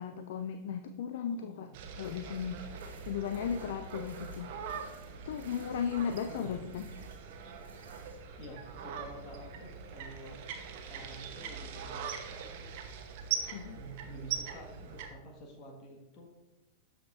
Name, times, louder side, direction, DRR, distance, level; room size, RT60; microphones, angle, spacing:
voice 1, 0.0-1.7 2.0-4.5 5.2-6.9 13.5-13.8, left 7 dB, 55° left, 8 dB, 0.4 m, -36 dB
voice 2, 1.3-1.7 6.2-6.6 8.4-10.4 10.9-13.0 13.7-16.3, right 1 dB, 40° left, 1 dB, 1.7 m, -49 dB
sound 1, 1.7-15.1, right 7 dB, 50° right, 0.9 m, -42 dB
sound 2, 2.0-8.2, right 4 dB, 70° right, 1.4 m, -59 dB
12.5 x 5.0 x 2.6 m, 1.0 s
figure-of-eight pair, 90°, 0 cm